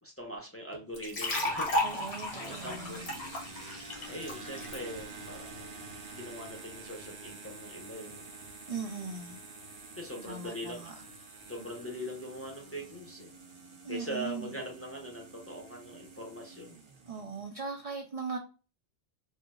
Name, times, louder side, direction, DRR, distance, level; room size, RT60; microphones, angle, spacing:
voice 1, 0.0-3.1 4.1-5.8 6.1-8.3 10.0-10.8 11.5-13.3 13.9-16.8, equal, 15° left, 0.5 m, -42 dB
sound 1, 0.7-17.5, right 3 dB, 70° right, 1.1 m, -48 dB
sound 2, 0.9-4.8, left 1 dB, 80° left, 1.3 m, -33 dB
voice 2, 1.8-3.0 8.7-9.4 10.3-11.0 13.8-14.5 17.1-18.4, right 4 dB, 55° right, 0.4 m, -39 dB
4.3 x 2.1 x 2.3 m
omnidirectional pair, 1.1 m